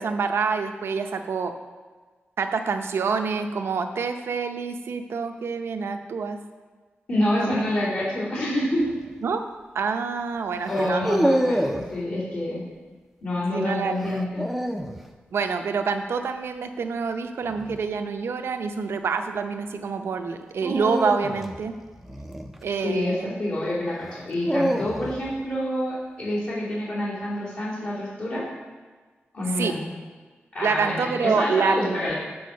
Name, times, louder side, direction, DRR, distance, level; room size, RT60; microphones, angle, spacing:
voice 1, 0.0-1.5 2.4-6.4 7.4-7.6 9.2-9.4 9.7-11.2 13.5-14.0 15.3-21.7 22.6-23.3 29.6-29.7 30.6-32.1, right 5 dB, 80° right, 7 dB, 0.6 m, -27 dB
voice 2, 7.1-8.8 10.6-12.6 13.2-14.5 22.7-28.4 29.3-29.8 30.5-32.1, left 1 dB, 60° left, -10 dB, 2.9 m, -27 dB
sound 1, 8.8-9.1 10.6-11.9 14.0-15.0 17.4-17.8 20.6-23.0 24.0-25.3, equal, 5° right, 0.5 m, -27 dB
8.6 x 4.7 x 6.3 m, 1.4 s
wide cardioid pair, 165°, 4 cm